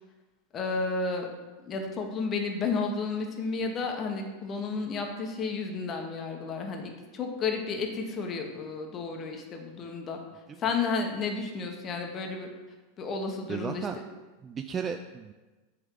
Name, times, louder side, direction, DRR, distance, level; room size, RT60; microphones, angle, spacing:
voice 1, 0.5-1.3 1.6-10.2 10.6-12.5 13.0-13.9, left 4 dB, 35° left, 3 dB, 1.1 m, -32 dB
voice 2, 13.5-14.0 14.4-15.3, right 6 dB, 30° right, 6 dB, 0.3 m, -34 dB
8.2 x 3.6 x 3.7 m, 1.2 s
hypercardioid pair, 95°, 0 cm